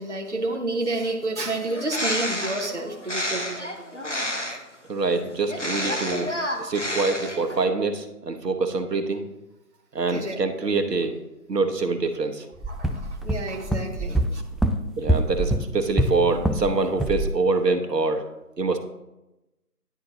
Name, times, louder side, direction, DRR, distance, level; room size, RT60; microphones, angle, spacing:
voice 1, 0.0-3.7 3.9-4.1 10.1-10.4 12.7-14.4, right 2 dB, 50° right, 1 dB, 0.6 m, -30 dB
Bird, 1.6-4.8 5.5-7.6, left 1 dB, 50° left, 0.7 m, -30 dB
voice 2, 4.9-6.3 6.6-9.2 9.9-11.1 11.5-12.4 15.0-18.2 18.6-18.8, right 3 dB, 90° right, 6 dB, 1.0 m, -25 dB
sound 1, 12.6-16.7 17.0-17.3, right 1 dB, ahead, 0.3 m, -24 dB
10.5 x 4.0 x 2.8 m, 0.97 s
figure-of-eight pair, 180°, 47 cm